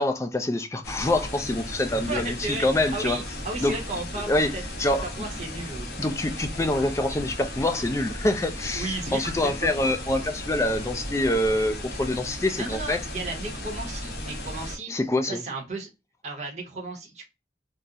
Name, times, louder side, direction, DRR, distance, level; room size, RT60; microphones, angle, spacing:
voice 1, 0.0-3.2 3.6-3.8 4.3-4.5 4.8-5.0 6.0-13.0 14.9-15.4, left 1 dB, 15° left, 0.3 m, -25 dB
sound 1, 0.8-14.8, left 1 dB, 60° left, 1.1 m, -36 dB
voice 2, 1.9-5.9 8.7-9.3 9.6-9.9 12.5-14.9 15.2-15.9 16.2-17.3, right 2 dB, 40° right, 0.8 m, -34 dB
3.7 x 2.0 x 2.6 m
head